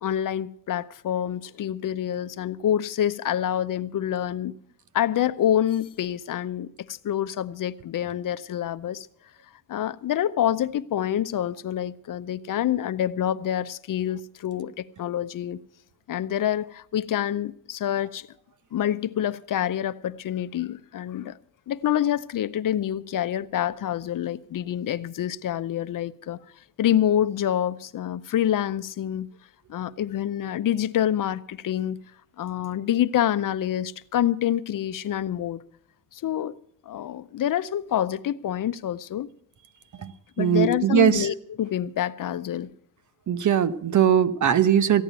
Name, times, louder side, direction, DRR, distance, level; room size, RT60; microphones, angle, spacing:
voice 1, 0.0-4.6 4.9-9.1 9.7-15.6 16.1-18.3 18.7-21.4 21.7-26.4 26.8-29.3 29.7-32.0 32.4-35.6 36.1-36.5 36.9-39.3 40.4-42.7, left 11 dB, 70° left, 0.6 m, -27 dB
voice 2, 39.9-41.3 43.3-45.0, right 9 dB, 60° right, 0.9 m, -21 dB
15.0 x 9.2 x 8.1 m
cardioid pair, 95°, 33 cm